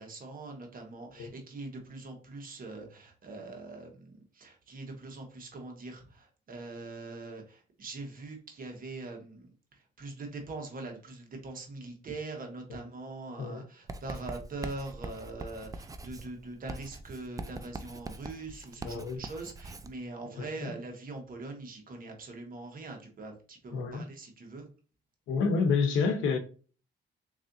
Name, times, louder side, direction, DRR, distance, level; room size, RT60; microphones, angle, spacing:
voice 1, 0.0-24.7, right 3 dB, 45° right, 1.3 m, -42 dB
Writing, 13.9-19.9, right 2 dB, 15° right, 0.4 m, -42 dB
voice 2, 18.8-19.2 20.4-20.7 23.7-24.1 25.3-26.4, left 5 dB, 85° left, 0.8 m, -29 dB
3.8 x 3.2 x 2.6 m
cardioid pair, 90°, 20 cm